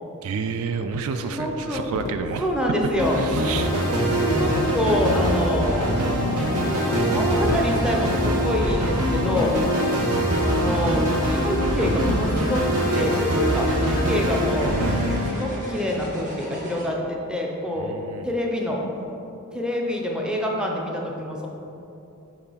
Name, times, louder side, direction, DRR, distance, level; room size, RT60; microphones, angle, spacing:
voice 1, 0.2-2.5 3.1-3.7 17.8-18.3, right 5 dB, 65° right, 8 dB, 0.3 m, -30 dB
sound 1, 0.7-16.8 18.8-19.0, equal, 35° right, 1.4 m, -37 dB
voice 2, 1.2-1.8 2.4-3.2 4.1-5.9 6.6-9.6 10.4-14.8 15.3-17.9 18.2-18.8 19.5-21.5, equal, 5° right, -1 dB, 0.6 m, -26 dB
sound 2, 1.9-12.9, left 5 dB, 55° left, 0.3 m, -35 dB
sound 3, 3.0-15.9, equal, 80° right, 1.0 m, -23 dB
5.7 x 3.8 x 5.6 m, 3.0 s
head